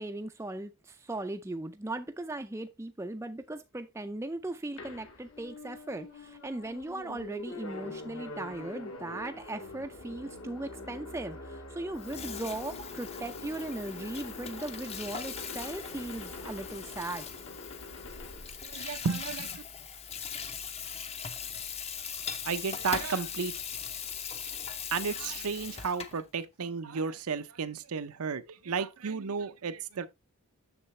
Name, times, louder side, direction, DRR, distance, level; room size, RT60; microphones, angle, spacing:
voice 1, 0.0-17.3, right 2 dB, 10° right, 0.4 m, -38 dB
sound 1, 4.8-19.5, left 2 dB, 65° left, 1.8 m, -44 dB
Water tap faucet / Sink (filling or washing), 11.9-26.2, left 7 dB, 30° left, 0.7 m, -40 dB
voice 2, 18.6-19.6 22.4-23.5 24.9-30.1, right 5 dB, 80° right, 0.6 m, -33 dB
7.0 x 6.6 x 3.1 m
head